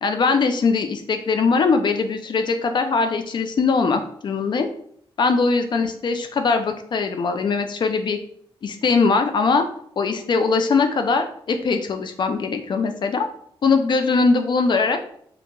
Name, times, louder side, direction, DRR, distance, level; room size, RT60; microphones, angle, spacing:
voice 1, 0.0-4.7 5.2-8.2 8.6-9.7 10.0-13.3 13.6-15.0, left 4 dB, 50° left, 7 dB, 0.4 m, -21 dB
3.7 x 2.3 x 2.8 m, 0.65 s
wide cardioid pair, 150°, 10 cm